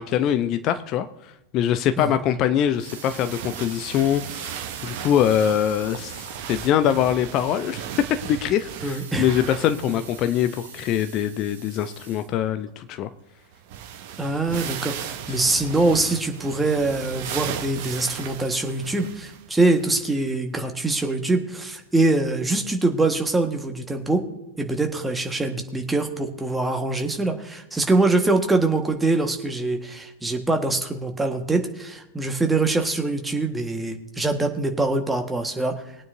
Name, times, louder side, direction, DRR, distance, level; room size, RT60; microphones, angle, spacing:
voice 1, 0.0-7.9 8.2-13.1, left 10 dB, 35° left, 10 dB, 0.7 m, -23 dB
sound 1, 2.8-10.3 10.6-10.7 13.2-13.3 13.5-20.2 20.8-20.9 22.0-22.1, right 9 dB, 50° right, 1.0 m, -36 dB
Water tap faucet / Sink (filling or washing) / Liquid, 2.8-6.5 7.0-7.1 7.4-7.5 8.6-12.8 13.3-13.4, right 5 dB, 65° right, 2.4 m, -44 dB
voice 2, 8.8-9.3 9.9-10.0 14.2-24.3 24.6-35.8, right 2 dB, 10° right, 4 dB, 1.6 m, -24 dB
21.5 x 9.2 x 2.7 m, 0.94 s
figure-of-eight pair, 90°, 0 cm